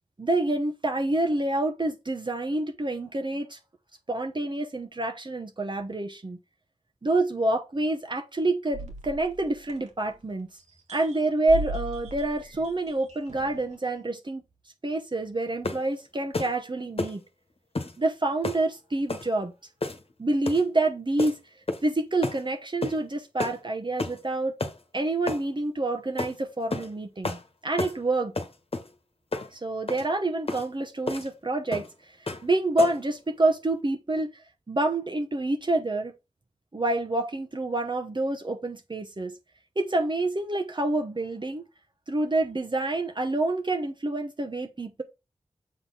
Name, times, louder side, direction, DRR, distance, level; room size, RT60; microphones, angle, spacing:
voice 1, 0.2-3.6 4.1-6.4 7.0-10.5 10.9-14.4 14.8-17.2 18.0-19.5 20.2-21.4 21.8-24.5 24.9-27.4 27.6-28.3 29.5-34.4 34.7-36.1 36.7-39.4 39.8-41.7 42.1-45.0, right 2 dB, 40° right, 1.1 m, -27 dB
sound 1, 8.7-10.3 10.7-13.7, right 2 dB, 80° right, 1.8 m, -38 dB
sound 2, 15.6-15.9 16.3-16.6 17.0-17.2 17.8-18.0 18.4-18.7 19.1-19.3 19.8-20.1 20.5-20.7 21.2-21.4 21.7-21.9 22.2-22.4 22.8-23.0 23.4-23.6 24.0-24.2 24.6-24.8 25.3-25.5 26.2-26.3 26.7-26.9 27.2-27.4 27.8-28.0 28.4-28.9 29.3-29.5 29.9-30.1 30.5-30.7 31.1-31.3 31.7-31.9 32.3-32.5 32.8-33.1, left 2 dB, 55° left, 1.3 m, -31 dB
7.5 x 4.0 x 4.0 m
cardioid pair, 45°, 12 cm